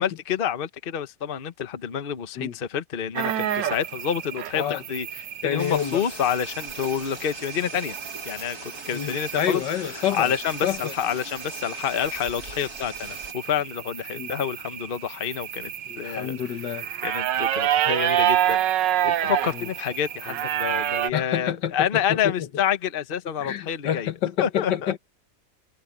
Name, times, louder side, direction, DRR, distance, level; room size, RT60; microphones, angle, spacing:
voice 1, 0.0-7.9 8.3-9.6 9.9-15.7 16.0-16.4 17.0-24.1 24.4-24.9, left 9 dB, 40° left, 1.0 m, -28 dB
sound 1, 3.2-21.1, right 11 dB, 85° right, 1.5 m, -29 dB
voice 2, 5.4-6.0 8.9-10.3 10.6-10.9 14.1-14.3 15.9-16.9 19.5-19.7 20.3-20.4 21.1-22.5 23.4-25.0, left 9 dB, 80° left, 1.8 m, -28 dB
sound 2, 5.6-13.3, right 2 dB, 55° right, 5.3 m, -41 dB
omnidirectional pair, 1.9 m